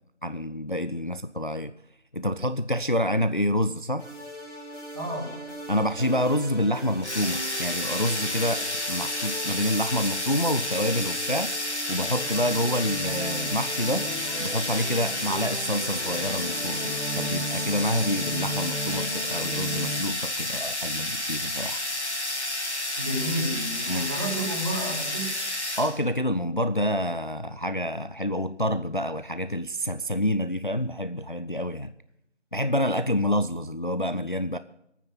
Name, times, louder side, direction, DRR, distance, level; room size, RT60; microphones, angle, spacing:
voice 1, 0.2-1.7 2.1-4.1 5.7-11.5 11.9-14.1 14.4-21.8 23.9-24.1 25.8-31.9 32.5-34.6, equal, 45° left, 12 dB, 0.5 m, -27 dB
sound 1, 4.0-20.0, equal, 5° right, 2.8 m, -37 dB
voice 2, 4.9-5.3 20.4-20.6 23.0-25.3, right 1 dB, 20° right, -4 dB, 3.1 m, -31 dB
sound 2, 7.0-26.0, left 1 dB, 70° left, 2.9 m, -31 dB
19.5 x 9.2 x 5.9 m, 0.78 s
figure-of-eight pair, 170°, 35 cm